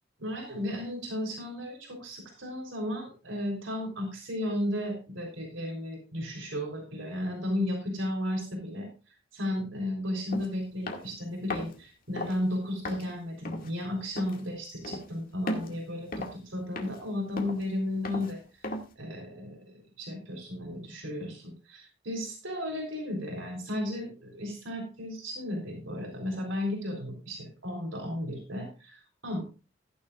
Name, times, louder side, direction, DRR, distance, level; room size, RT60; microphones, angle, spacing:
voice 1, 0.2-8.9 9.3-18.4 19.0-29.4, left 1 dB, 85° right, 1 dB, 3.6 m, -34 dB
sound 1, 10.3-10.5 10.9-11.1 11.5-11.8 12.2-12.4 12.8-13.1 13.5-13.7 14.2-14.4 14.8-15.1 15.5-15.8 16.1-16.5 16.8-17.0 17.4-17.7 18.0-18.3 18.6-18.9, left 1 dB, 50° left, 2.1 m, -35 dB
15.0 x 10.5 x 2.4 m, 0.32 s
head